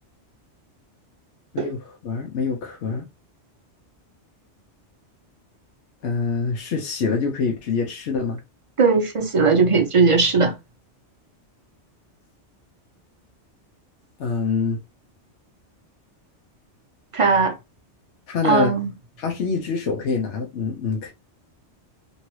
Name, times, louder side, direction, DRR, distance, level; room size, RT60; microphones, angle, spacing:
voice 1, 1.5-3.1 6.0-8.4 14.2-14.8 18.3-18.7 19.2-21.1, left 5 dB, 75° left, 1.1 m, -25 dB
voice 2, 8.8-10.5 17.1-17.5 18.4-18.9, right 4 dB, 45° right, 0.4 m, -18 dB
2.9 x 2.6 x 3.0 m
omnidirectional pair, 1.2 m